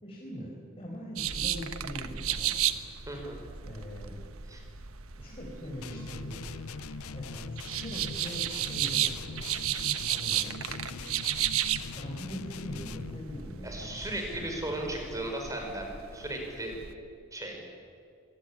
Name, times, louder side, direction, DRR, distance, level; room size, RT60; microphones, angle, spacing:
voice 1, 0.0-2.6 3.6-4.2 5.2-6.5 7.1-9.4 10.0-11.0 11.3-11.4 11.9-14.8, equal, 25° left, -3 dB, 4.8 m, -42 dB
sound 1, 1.2-16.9, right 11 dB, 70° right, 1.2 m, -34 dB
voice 2, 3.1-3.4 4.5-4.6 13.6-16.7 17.3-17.6, right 1 dB, 15° right, 2 dB, 5.0 m, -36 dB
sound 2, 5.8-13.3, left 5 dB, 80° left, 0.6 m, -42 dB
26.0 x 20.0 x 9.9 m, 2.3 s
head